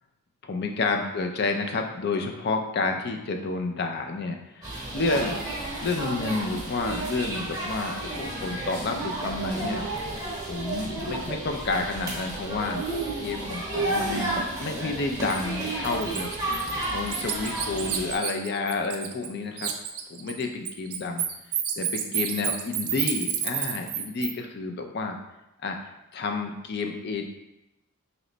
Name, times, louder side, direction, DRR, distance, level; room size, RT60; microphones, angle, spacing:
voice 1, 0.4-5.4 5.8-9.9 10.4-12.9 13.2-19.7 20.1-21.3 21.8-25.2 25.6-25.8 26.1-27.2, left 3 dB, 45° left, 4 dB, 0.4 m, -30 dB
sound 1, 4.6-18.1, right 2 dB, 15° right, 0.9 m, -32 dB
Bird, 15.3-15.4 15.8-19.3 19.6-24.3, right 10 dB, 80° right, 0.4 m, -30 dB
3.2 x 3.0 x 3.8 m, 0.91 s
head